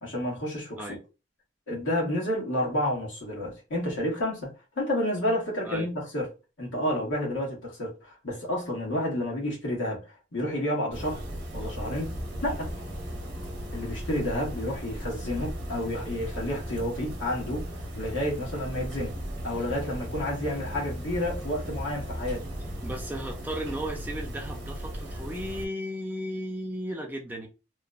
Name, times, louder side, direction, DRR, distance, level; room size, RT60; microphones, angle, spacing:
voice 1, 0.0-1.0 1.7-4.5 4.8-6.3 6.6-10.0 10.3-11.2 11.5-12.1 12.4-12.7 13.7-17.7 18.0-19.2 19.4-22.5, left 1 dB, 85° left, 1.3 m, -30 dB
sound 1, 10.9-25.7, equal, 60° right, 0.8 m, -36 dB
voice 2, 22.8-27.5, equal, 10° right, 0.4 m, -35 dB
3.0 x 2.0 x 2.4 m
head